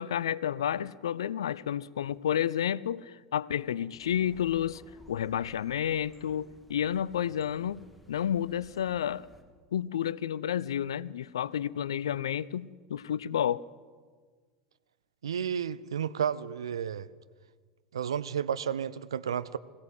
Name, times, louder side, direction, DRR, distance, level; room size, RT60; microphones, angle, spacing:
voice 1, 0.0-4.8 5.1-7.8 8.1-9.3 9.7-13.6, left 9 dB, 70° left, 0.5 m, -30 dB
sound 1, 4.0-9.4, equal, ahead, 2.7 m, -56 dB
voice 2, 15.2-17.1 17.9-19.6, right 8 dB, 70° right, 0.7 m, -32 dB
21.5 x 16.5 x 8.0 m
figure-of-eight pair, 80°, 3 cm